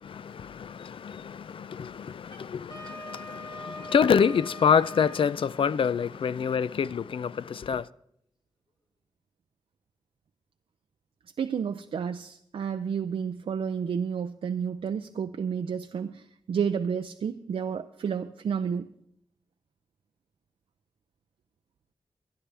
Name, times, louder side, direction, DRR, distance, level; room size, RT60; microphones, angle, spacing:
voice 1, 0.0-7.9, left 7 dB, 70° left, 0.4 m, -27 dB
Wind instrument woodwind instrument, 2.2-5.3, left 1 dB, 50° left, 3.0 m, -42 dB
voice 2, 11.4-18.9, right 7 dB, 85° right, 0.5 m, -31 dB
24.5 x 9.8 x 3.4 m
wide cardioid pair, 110°, 9 cm